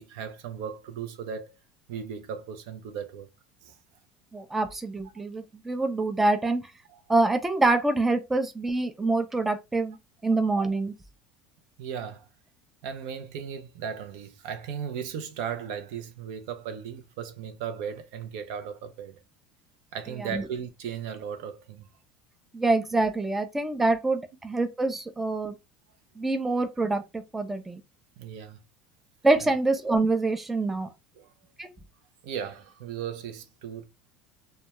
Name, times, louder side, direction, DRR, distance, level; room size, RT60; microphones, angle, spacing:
voice 1, 0.0-1.6 1.9-3.3 3.6-3.8 6.9-7.0 11.8-12.3 12.8-19.2 19.9-21.9 28.2-28.6 29.4-29.5 31.1-31.3 32.2-33.8, right 7 dB, 70° right, 0.5 m, -36 dB
voice 2, 4.3-6.6 7.1-10.0 10.2-10.9 20.2-20.4 22.5-25.5 26.2-27.8 29.2-30.9 31.6-31.7, right 2 dB, 10° right, 0.3 m, -25 dB
2.2 x 2.2 x 2.8 m
supercardioid pair, 130°, 2 cm